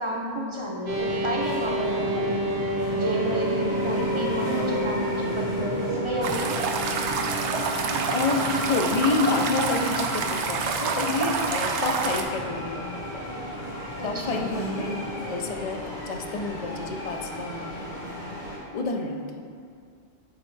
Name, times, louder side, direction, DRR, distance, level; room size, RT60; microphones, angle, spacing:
voice 1, 0.0-2.5 2.9-6.6 14.0-14.4, right 1 dB, 30° right, -2 dB, 0.6 m, -31 dB
sound 1, 0.9-18.6, equal, 70° left, 2.1 m, -33 dB
sound 2, 0.9-12.4, equal, 55° right, 1.0 m, -32 dB
sound 3, 6.2-12.2, right 5 dB, 85° right, 0.9 m, -28 dB
voice 2, 8.0-13.0 14.0-14.9 15.2-17.7 18.7-19.4, left 4 dB, 55° left, 3 dB, 0.4 m, -29 dB
8.4 x 4.2 x 3.2 m, 2.3 s
omnidirectional pair, 1.1 m